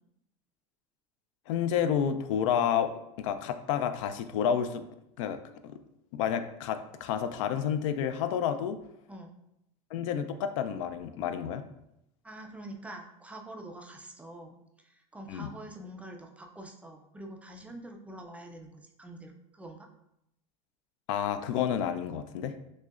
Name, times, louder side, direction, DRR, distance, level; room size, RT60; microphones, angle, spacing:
voice 1, 1.5-4.8 5.2-5.4 5.6-5.8 6.1-8.8 9.9-11.6 15.3-15.5 21.1-22.5, left 8 dB, 80° left, 9 dB, 0.4 m, -30 dB
voice 2, 12.2-19.9, right 1 dB, 10° right, 3 dB, 0.3 m, -46 dB
6.1 x 2.1 x 2.4 m, 0.82 s
supercardioid pair, 135°, 16 cm